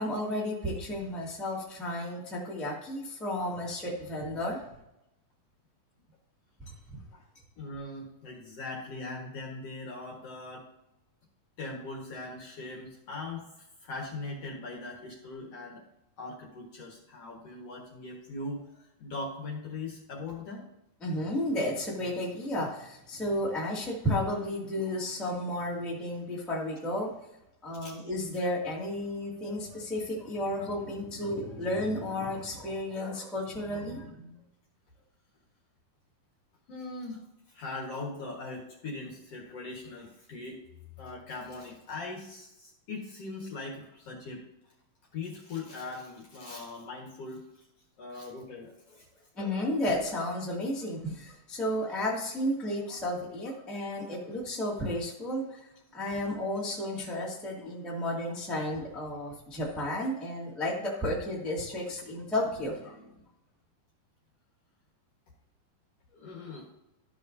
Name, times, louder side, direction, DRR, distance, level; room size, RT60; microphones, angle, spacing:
voice 1, 0.0-4.6 6.6-6.7 21.0-27.1 27.6-34.4 49.3-63.1, left 1 dB, ahead, -5 dB, 1.1 m, -33 dB
voice 2, 7.6-10.7 11.6-15.8 16.2-20.6 27.8-28.1 36.7-37.2 37.5-40.6 41.0-44.4 45.1-47.5 48.0-49.1 66.1-66.7, left 3 dB, 55° left, -1 dB, 2.1 m, -40 dB
13.0 x 6.3 x 2.7 m, 0.88 s
omnidirectional pair, 4.1 m